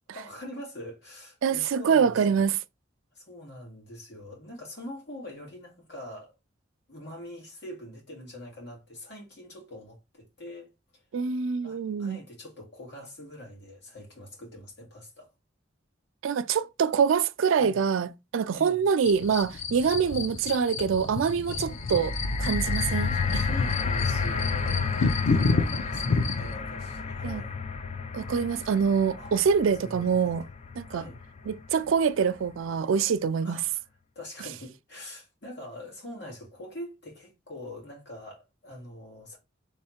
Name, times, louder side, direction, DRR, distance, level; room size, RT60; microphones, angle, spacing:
voice 1, 0.1-2.4 3.1-6.3 6.9-11.0 11.6-15.3 17.6-17.8 18.5-18.9 21.5-21.9 22.6-25.0 25.3-27.6 29.2-29.3 29.8-30.3 30.8-31.2 33.4-33.9 34.2-39.4, left 1 dB, 55° left, 2.0 m, -43 dB
voice 2, 1.4-2.6 11.1-12.2 16.2-22.1 22.4-23.4 27.2-27.4 28.1-30.4 30.8-31.0 31.5-33.6, right 6 dB, 85° right, 0.4 m, -25 dB
sound 1, 19.0-26.5, left 4 dB, 90° left, 0.6 m, -30 dB
sound 2, 21.5-31.7 32.5-32.6, left 4 dB, 30° left, 0.4 m, -31 dB
3.6 x 3.3 x 4.2 m
head